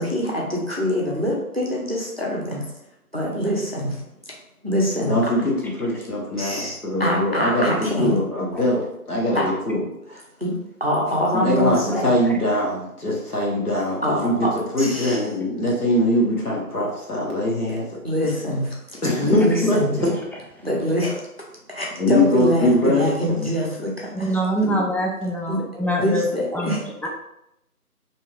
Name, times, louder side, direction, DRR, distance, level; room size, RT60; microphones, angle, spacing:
voice 1, 0.0-2.7 3.1-4.0 4.3-4.4 4.6-5.1 6.4-8.2 9.3-9.5 10.4-10.5 10.8-12.1 14.0-14.5 14.8-15.2 15.7-15.8 17.7-17.8 18.0-20.1 20.6-21.2 21.7-24.8 25.5-25.6 25.9-27.1, equal, 40° right, -2 dB, 0.5 m, -25 dB
voice 2, 5.0-10.2 11.3-18.0 19.0-20.1 22.0-23.5, left 1 dB, 70° left, -3 dB, 1.2 m, -22 dB
voice 3, 24.3-26.8 27.0-27.1, equal, 5° left, -1 dB, 0.3 m, -24 dB
3.1 x 2.7 x 2.3 m, 0.83 s
figure-of-eight pair, 175°, 46 cm